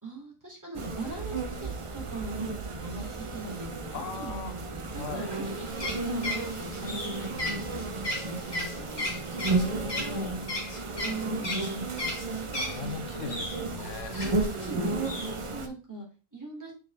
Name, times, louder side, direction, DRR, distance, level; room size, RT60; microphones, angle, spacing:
voice 1, 0.0-9.1 11.0-12.1 14.5-16.7, right 2 dB, 15° right, -4 dB, 2.5 m, -42 dB
sound 1, 0.7-15.7, right 3 dB, 40° right, 0.5 m, -33 dB
voice 2, 3.9-4.6 4.9-5.3 9.3-10.5 12.6-14.2, left 6 dB, 75° left, 7 dB, 1.2 m, -40 dB
sound 2, 5.3-12.9 13.3-14.7 15.0-15.3, left 1 dB, 35° left, 1.4 m, -35 dB
5.9 x 4.8 x 3.4 m, 0.35 s
omnidirectional pair, 1.3 m